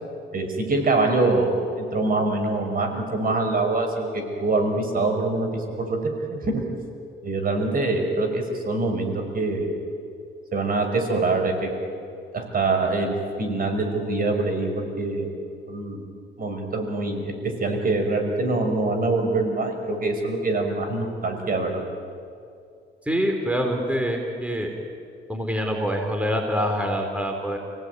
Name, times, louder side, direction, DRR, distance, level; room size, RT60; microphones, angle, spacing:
voice 1, 0.3-1.5 1.8-6.0 6.3-6.6 7.2-9.7 10.5-11.7 12.3-15.3 15.7-16.1 16.4-21.8, right 2 dB, 45° right, 4 dB, 5.5 m, -24 dB
voice 2, 23.1-24.7 25.3-27.6, equal, 5° right, 2 dB, 4.2 m, -25 dB
29.5 x 18.0 x 9.5 m, 2.4 s
cardioid pair, 90°, 20 cm